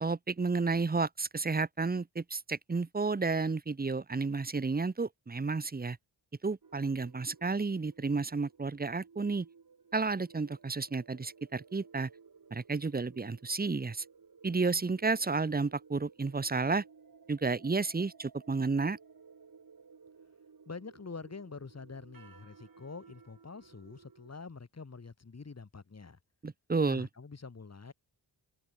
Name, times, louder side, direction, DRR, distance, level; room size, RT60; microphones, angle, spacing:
voice 1, 0.0-6.0 6.4-9.5 9.9-12.1 12.5-14.0 14.4-16.8 17.3-19.0 26.4-27.1, right 4 dB, 20° right, 0.9 m, -31 dB
sound 1, 6.6-24.3, right 5 dB, 50° right, 5.6 m, -58 dB
voice 2, 20.7-26.2 26.9-27.9, left 4 dB, 35° left, 3.5 m, -46 dB
open air
wide cardioid pair, 115°, 44 cm